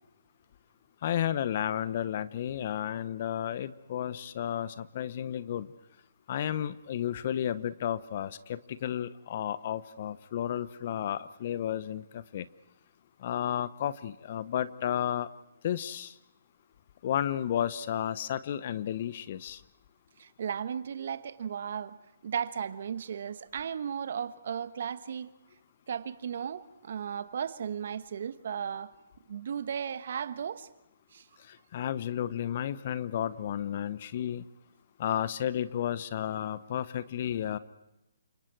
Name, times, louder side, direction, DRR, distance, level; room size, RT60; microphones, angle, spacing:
voice 1, 1.0-5.7 6.3-12.5 13.2-15.3 15.6-16.1 17.0-19.6 31.5-34.4 35.0-37.6, left 10 dB, 45° left, 15 dB, 0.9 m, -32 dB
voice 2, 20.2-22.0 22.2-25.3 25.9-28.9 29.3-30.7 31.1-31.2, right 7 dB, 60° right, 13 dB, 1.2 m, -35 dB
29.5 x 26.5 x 4.7 m, 0.92 s
figure-of-eight pair, 140°, 0 cm